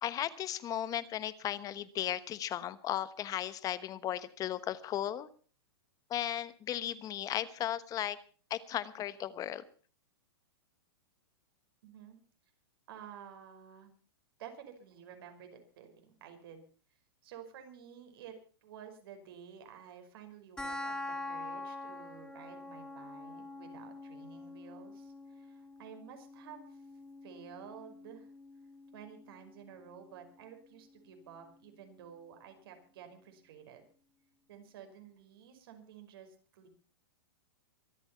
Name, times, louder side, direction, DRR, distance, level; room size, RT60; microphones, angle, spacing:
voice 1, 0.0-5.3 6.1-8.2 8.5-9.6, left 11 dB, 25° left, 16 dB, 1.2 m, -36 dB
voice 2, 11.8-12.2 12.9-13.9 14.4-16.6 17.2-26.8 27.2-28.3 28.9-33.8 34.5-36.7, right 8 dB, 65° right, 5 dB, 5.4 m, -52 dB
sound 1, 20.6-31.5, left 2 dB, 5° left, 3.2 m, -46 dB
24.5 x 8.8 x 5.7 m, 0.40 s
hypercardioid pair, 130°, 14 cm